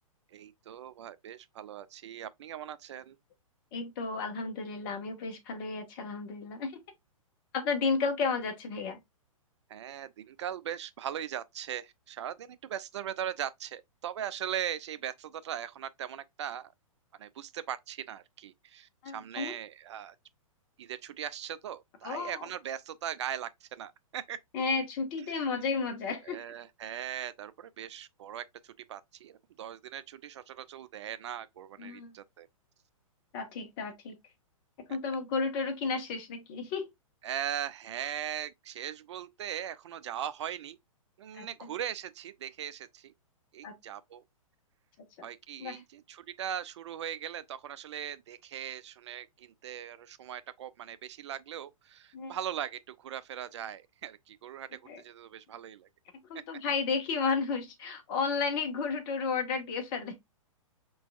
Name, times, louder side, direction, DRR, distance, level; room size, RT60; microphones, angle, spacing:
voice 1, 0.3-3.2 9.7-16.7 17.2-20.2 20.8-24.4 25.3-25.5 26.2-32.5 37.2-40.8 41.2-43.1 43.5-44.2 45.2-55.9, right 10 dB, 55° right, 0.4 m, -39 dB
voice 2, 3.7-6.8 7.5-9.0 19.0-19.5 22.0-22.5 24.5-26.4 31.8-32.1 33.3-34.1 34.9-36.9 41.3-41.7 43.6-43.7 45.2-45.3 45.6-45.8 52.1-52.3 54.9-55.0 56.3-60.2, left 5 dB, 40° left, 1.6 m, -32 dB
5.6 x 3.9 x 2.4 m
figure-of-eight pair, 115°, 18 cm